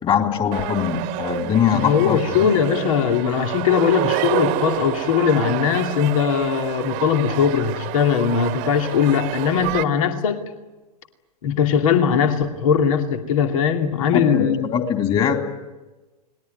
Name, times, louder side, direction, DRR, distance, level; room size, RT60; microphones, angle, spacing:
voice 1, 0.0-2.5 14.1-15.4, left 8 dB, 25° left, 4 dB, 3.8 m, -22 dB
sound 1, 0.5-9.8, right 16 dB, 40° right, 1.5 m, -28 dB
voice 2, 1.7-10.4 11.4-14.7, left 7 dB, 55° left, 5 dB, 2.6 m, -20 dB
30.0 x 20.5 x 9.5 m, 1.2 s
figure-of-eight pair, 95°, 21 cm